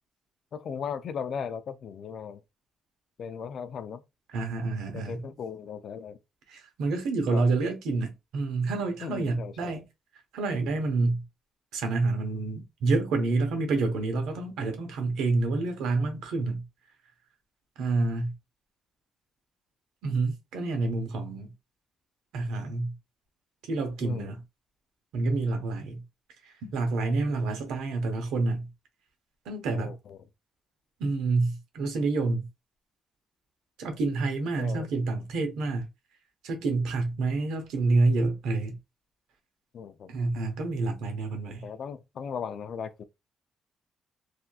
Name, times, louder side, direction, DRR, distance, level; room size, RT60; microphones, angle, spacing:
voice 1, 0.5-2.4 3.2-4.0 4.9-6.2 7.3-7.5 9.0-9.8 24.0-24.3 29.7-30.2 34.6-34.9 39.7-40.1 41.5-43.0, left 7 dB, 60° left, 0.4 m, -37 dB
voice 2, 4.3-5.2 6.5-9.8 10.3-11.2 11.7-16.6 17.8-18.3 20.0-21.5 22.3-22.9 23.6-24.4 25.1-26.0 26.5-28.7 29.5-29.9 31.0-32.5 33.8-35.9 36.4-38.8 40.1-41.6, right 3 dB, 85° right, 1.0 m, -28 dB
3.3 x 2.7 x 2.3 m
cardioid pair, 90°, 0 cm